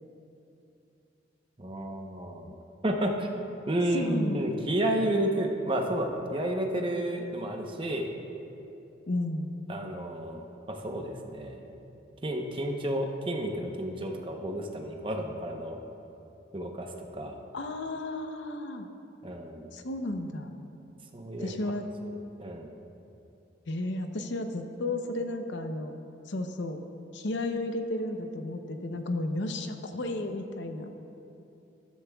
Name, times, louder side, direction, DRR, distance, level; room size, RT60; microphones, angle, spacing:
voice 1, 1.6-2.5 2.8-3.3 3.7-8.1 9.7-11.7 12.2-15.8 16.5-17.4 19.2-19.7 21.1-22.7, right 1 dB, 25° right, 2 dB, 0.8 m, -31 dB
voice 2, 3.9-4.4 9.1-9.5 17.5-18.9 19.7-20.5 21.4-21.9 23.7-25.9 26.3-26.8 27.1-30.9, left 2 dB, 70° left, 6 dB, 0.7 m, -33 dB
13.5 x 13.5 x 2.3 m, 2.8 s
head